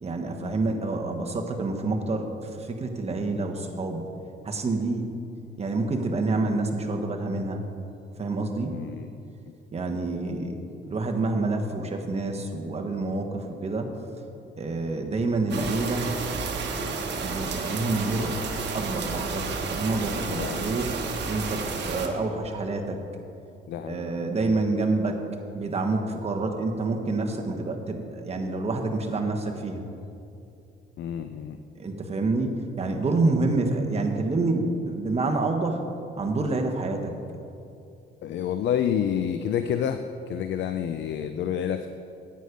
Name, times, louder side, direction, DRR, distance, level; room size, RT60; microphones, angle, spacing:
voice 1, 0.0-2.3 2.6-4.1 4.4-5.1 5.6-7.6 8.2-8.8 9.7-10.6 10.9-13.9 14.6-16.2 17.2-18.3 18.7-21.0 21.3-23.0 23.9-25.2 25.5-29.8 31.8-35.8 36.2-37.1, right 3 dB, 30° right, 3 dB, 1.3 m, -27 dB
voice 2, 8.7-9.1 20.3-20.7 23.7-24.6 31.0-31.6 38.2-40.0 40.3-41.9, left 9 dB, 65° left, 9 dB, 0.5 m, -29 dB
sound 1, 15.5-22.1, right 4 dB, 60° right, 1.2 m, -31 dB
9.3 x 8.3 x 5.2 m, 2.6 s
cardioid pair, 90°, 20 cm